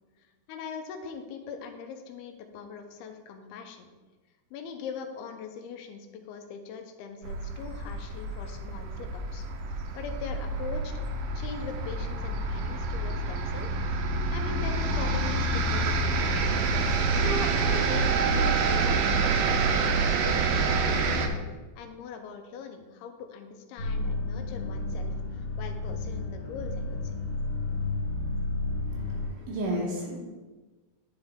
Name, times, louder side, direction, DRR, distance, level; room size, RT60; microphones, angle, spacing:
voice 1, 0.2-3.9 4.5-10.9 11.3-13.7 14.0-16.4 17.1-21.3 21.8-27.1, left 6 dB, 85° left, 6 dB, 2.6 m, -41 dB
sound 1, 7.2-21.3, right 3 dB, 80° right, 2.0 m, -27 dB
sound 2, 23.8-29.3, left 2 dB, 65° left, 1.9 m, -32 dB
voice 2, 28.9-30.2, right 1 dB, 65° right, -2 dB, 2.4 m, -33 dB
9.8 x 5.2 x 3.6 m, 1.2 s
omnidirectional pair, 4.5 m